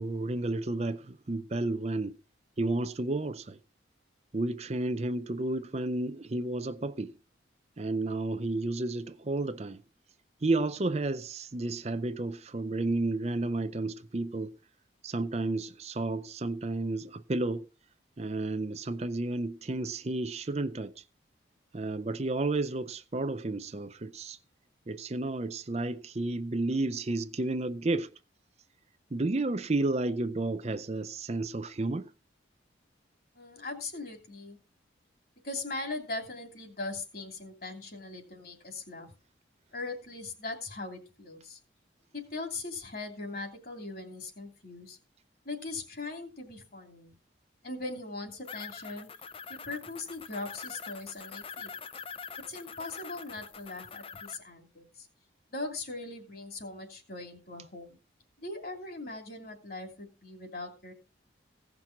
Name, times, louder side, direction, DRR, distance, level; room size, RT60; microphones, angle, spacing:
voice 1, 0.0-2.2 2.6-3.6 4.3-7.2 7.8-9.8 10.4-14.6 15.0-17.7 18.2-21.0 21.7-24.4 24.9-28.1 29.1-32.1, right 2 dB, 35° right, 0.5 m, -32 dB
voice 2, 33.3-34.6 35.4-39.1 39.7-41.6 42.1-45.0 45.4-47.1 47.6-49.1 49.5-51.7 52.5-55.1 55.5-58.0 58.4-60.9, left 3 dB, 50° left, 2.9 m, -40 dB
sound 1, 48.4-54.4, left 6 dB, 30° left, 0.6 m, -44 dB
16.5 x 6.0 x 5.9 m
head